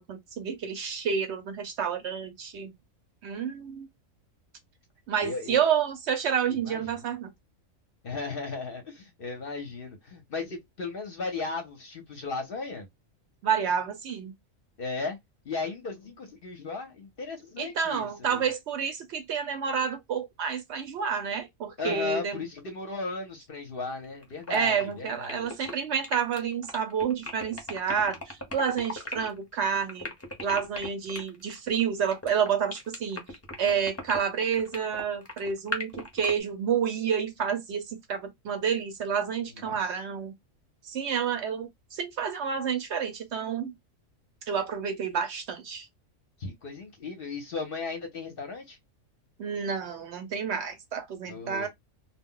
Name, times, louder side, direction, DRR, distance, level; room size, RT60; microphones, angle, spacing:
voice 1, 0.1-2.7 3.2-3.9 5.1-7.3 13.4-14.3 17.6-22.4 24.5-30.1 30.4-33.2 33.6-40.3 40.8-43.7 44.5-45.9 49.4-51.7, right 7 dB, 65° right, 0.8 m, -29 dB
voice 2, 5.2-5.6 6.5-7.0 8.0-12.9 14.8-15.2 15.4-18.5 21.8-25.6 39.5-39.9 46.4-48.8 51.3-51.7, left 3 dB, 55° left, 0.7 m, -36 dB
sound 1, 23.9-36.3, left 1 dB, 15° left, 0.5 m, -37 dB
2.2 x 2.1 x 3.6 m
omnidirectional pair, 1.4 m